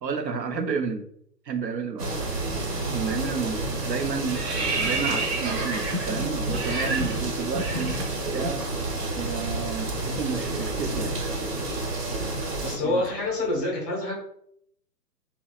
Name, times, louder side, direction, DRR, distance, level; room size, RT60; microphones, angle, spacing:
voice 1, 0.0-1.0 1.5-2.1 2.9-4.4 4.7-8.0 8.3-8.6 9.2-11.1 12.8-13.0, right 5 dB, 90° right, 6 dB, 0.6 m, -31 dB
sound 1, 2.0-12.8, right 2 dB, 70° right, 1.1 m, -30 dB
sound 2, 3.6-8.6 8.9-9.0 9.4-13.4, right 2 dB, 45° right, 0.6 m, -32 dB
voice 2, 12.6-14.1, left 2 dB, 15° left, -4 dB, 0.4 m, -27 dB
2.9 x 2.1 x 2.3 m, 0.69 s
hypercardioid pair, 140°, 49 cm